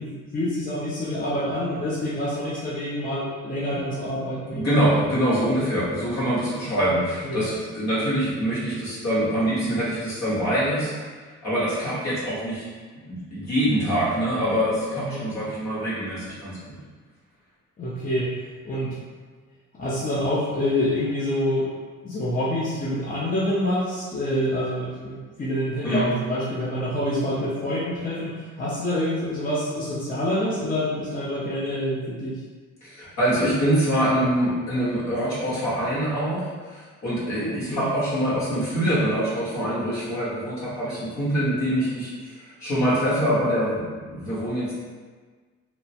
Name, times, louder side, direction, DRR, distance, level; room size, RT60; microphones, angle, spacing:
voice 1, 0.0-4.6 5.4-5.5 7.2-7.4 15.0-15.3 17.8-18.3 18.6-19.0 19.8-21.7 22.0-32.4 37.4-37.9, left 1 dB, 30° left, -7 dB, 0.6 m, -27 dB
voice 2, 4.5-10.9 11.4-12.7 13.1-16.8 25.8-26.0 32.8-44.7, equal, 60° left, -9 dB, 1.5 m, -24 dB
2.9 x 2.1 x 2.8 m, 1.5 s
cardioid pair, 90°, 30 cm